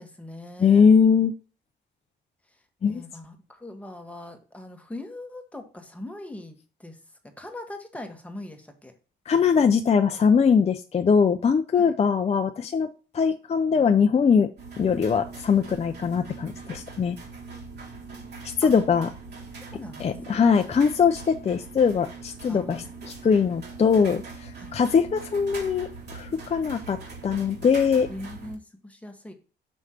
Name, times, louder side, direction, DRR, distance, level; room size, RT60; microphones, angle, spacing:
voice 1, 0.0-0.9 2.8-7.0 7.2-8.9 11.8-11.9 18.6-18.7 19.7-20.4 22.5-22.8 24.6-24.7 28.1-29.3, left 1 dB, 5° left, 5 dB, 1.4 m, -41 dB
voice 2, 0.6-1.3 2.8-3.0 9.3-12.9 13.1-14.5 14.8-17.2 18.6-19.1 20.0-27.0 27.2-28.1, left 6 dB, 30° left, 6 dB, 0.5 m, -21 dB
sound 1, 14.6-28.5, right 4 dB, 55° right, 2.3 m, -41 dB
6.3 x 3.2 x 5.7 m, 0.36 s
cardioid pair, 90°, 20 cm